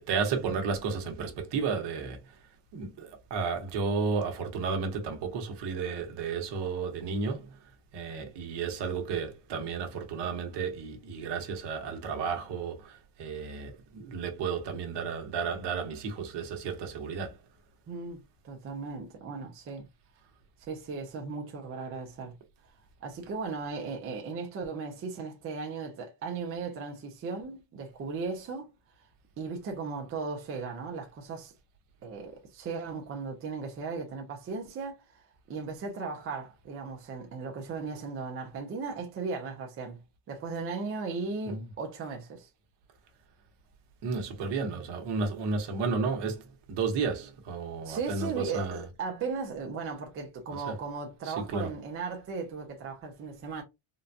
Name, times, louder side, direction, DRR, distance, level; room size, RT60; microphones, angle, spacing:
voice 1, 0.0-2.3 2.7-7.6 7.9-17.4 41.5-41.6 44.0-48.8 50.5-50.7 51.2-51.7, right 5 dB, 55° right, 1.1 m, -33 dB
voice 2, 17.9-19.9 20.6-22.3 23.0-28.7 29.4-31.5 32.0-40.0 40.3-42.5 47.8-53.6, right 4 dB, 30° right, 0.5 m, -37 dB
3.8 x 2.2 x 2.6 m
cardioid pair, 165°, 49 cm